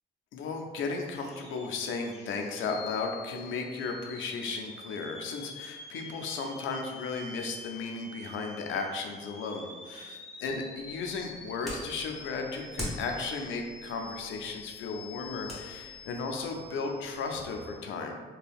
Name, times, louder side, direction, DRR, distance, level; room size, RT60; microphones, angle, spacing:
voice 1, 0.3-18.2, left 4 dB, 80° left, 2 dB, 0.5 m, -35 dB
sound 1, 1.0-17.8, left 3 dB, 35° left, 0.7 m, -47 dB
sound 2, 10.8-17.5, equal, ahead, 1.1 m, -45 dB
2.6 x 2.2 x 3.4 m, 1.5 s
cardioid pair, 90°, 20 cm